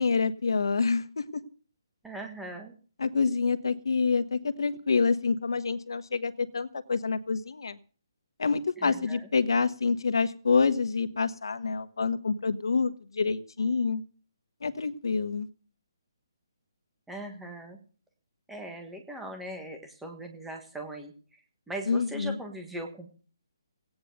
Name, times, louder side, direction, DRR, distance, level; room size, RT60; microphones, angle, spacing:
voice 1, 0.0-1.4 3.0-7.8 8.4-14.0 14.6-15.5 21.9-22.4, left 4 dB, 70° left, 11 dB, 1.3 m, -27 dB
voice 2, 2.0-2.7 8.8-9.3 17.1-17.8 18.5-21.1 21.7-23.1, right 1 dB, ahead, 3 dB, 1.4 m, -40 dB
17.0 x 9.5 x 6.7 m, 0.42 s
hypercardioid pair, 180°, 2 cm